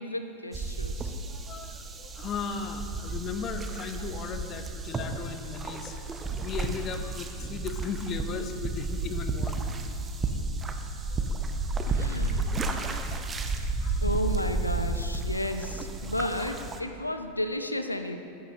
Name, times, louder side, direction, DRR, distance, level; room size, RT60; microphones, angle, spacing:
voice 1, 0.0-1.1 11.9-12.5 14.0-18.2, left 1 dB, 85° left, 7 dB, 0.5 m, -33 dB
sound 1, 0.5-16.8, right 3 dB, 20° right, 0.6 m, -32 dB
voice 2, 1.3-9.8 10.2-10.4 10.8-10.9 11.1-11.8 13.8-14.0 16.0-16.1, left 6 dB, 30° left, 8 dB, 0.7 m, -37 dB
15.0 x 9.4 x 2.8 m, 2.5 s
figure-of-eight pair, 90°, 0 cm